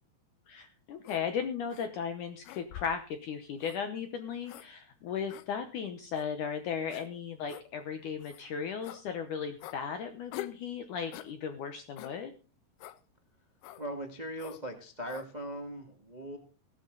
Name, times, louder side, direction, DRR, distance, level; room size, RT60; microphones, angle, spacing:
voice 1, 0.5-12.3, left 7 dB, 70° left, 7 dB, 2.2 m, -36 dB
sound 1, 1.0-1.2 1.7-1.9 2.4-3.0 3.6-3.8 4.5-4.7 5.3-5.5 6.1-6.3 6.9-7.1 7.5-7.7 8.2-8.4 8.8-9.0 9.6-9.8 10.3-10.6 11.1-11.3 12.0-12.2 12.8-13.0 13.6-13.8 14.4-14.6 15.1-15.3, left 14 dB, 85° left, 2.8 m, -45 dB
voice 2, 13.8-16.4, right 1 dB, 40° right, 4 dB, 0.5 m, -39 dB
17.5 x 11.5 x 3.9 m, 0.37 s
omnidirectional pair, 4.4 m